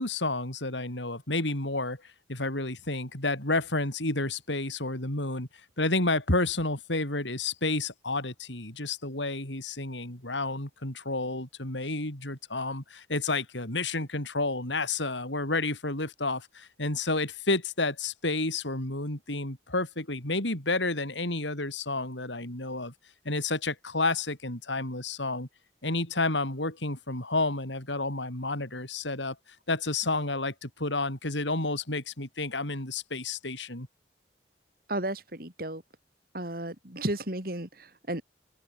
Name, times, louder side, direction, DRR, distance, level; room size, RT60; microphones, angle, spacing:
voice 1, 0.0-5.5 5.8-22.9 23.2-25.5 25.8-29.3 29.7-33.9, left 2 dB, 90° left, 6.7 m, -30 dB
voice 2, 34.9-35.8 36.3-38.2, right 1 dB, 55° right, 4.5 m, -33 dB
head